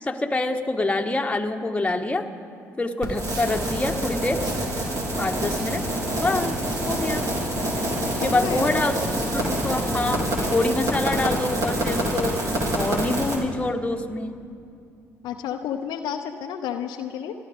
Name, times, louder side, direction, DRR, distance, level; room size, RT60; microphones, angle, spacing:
voice 1, 0.0-2.3 2.8-4.4 5.2-5.8 6.2-6.5 6.9-7.3 8.1-10.3 10.5-12.4 12.7-14.4, left 2 dB, 15° left, 3 dB, 1.5 m, -26 dB
sound 1, 3.0-10.4, right 1 dB, 60° right, 2.2 m, -35 dB
sound 2, 3.1-13.4, right 1 dB, 45° right, 3.7 m, -27 dB
voice 2, 8.2-8.8 15.2-17.3, left 8 dB, 65° left, 6 dB, 0.7 m, -31 dB
29.5 x 12.5 x 3.7 m, 2.4 s
hypercardioid pair, 55°, 8 cm